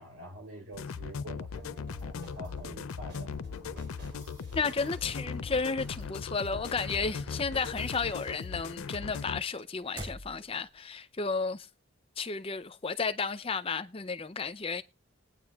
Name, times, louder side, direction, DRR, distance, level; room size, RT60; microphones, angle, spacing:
voice 1, 0.0-3.4, right 1 dB, 70° right, 4.2 m, -47 dB
sound 1, 0.7-9.4, left 6 dB, 80° left, 0.5 m, -39 dB
sound 2, 1.5-8.7, equal, 50° right, 3.8 m, -48 dB
voice 2, 4.5-11.7 12.2-14.8, left 4 dB, 25° left, 0.5 m, -33 dB
sound 3, 5.6-6.8 7.2-7.7 8.0-10.8, equal, 25° right, 3.3 m, -46 dB
20.0 x 9.2 x 2.4 m
head